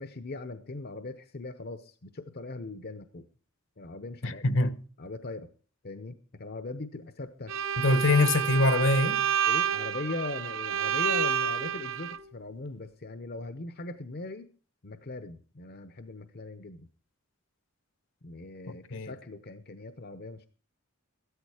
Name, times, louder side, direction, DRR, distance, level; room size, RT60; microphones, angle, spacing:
voice 1, 0.0-3.3 3.8-4.4 5.0-5.5 5.8-7.5 8.5-8.6 9.5-14.5 14.8-16.9 18.2-20.5, left 2 dB, 50° left, 0.8 m, -40 dB
voice 2, 4.2-4.8 7.8-9.3 18.7-19.1, left 2 dB, 65° left, 1.1 m, -24 dB
Bowed string instrument, 7.5-12.2, right 8 dB, 70° right, 0.8 m, -29 dB
14.0 x 13.0 x 4.9 m
head